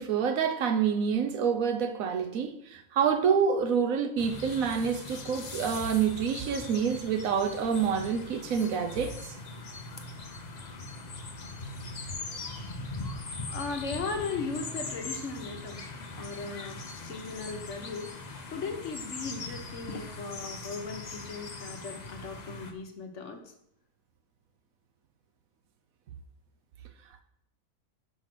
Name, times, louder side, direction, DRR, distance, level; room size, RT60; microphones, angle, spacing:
voice 1, 0.0-9.1, right 7 dB, 70° right, 1.2 m, -27 dB
sound 1, 4.2-22.7, left 3 dB, 40° left, 0.7 m, -41 dB
voice 2, 13.5-15.9 16.2-16.8 17.1-18.1 18.5-23.4, left 4 dB, 55° left, 1.2 m, -37 dB
6.4 x 5.3 x 5.9 m
omnidirectional pair, 1.5 m